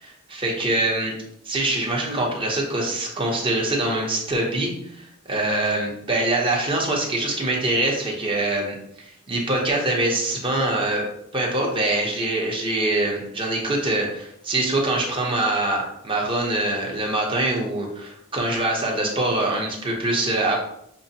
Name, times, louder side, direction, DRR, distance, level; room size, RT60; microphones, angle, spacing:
voice 1, 0.0-1.1 1.5-5.0 5.3-8.7 9.3-11.1 11.3-20.6, right 2 dB, 25° right, -2 dB, 0.9 m, -24 dB
6.2 x 2.2 x 2.7 m, 0.75 s
head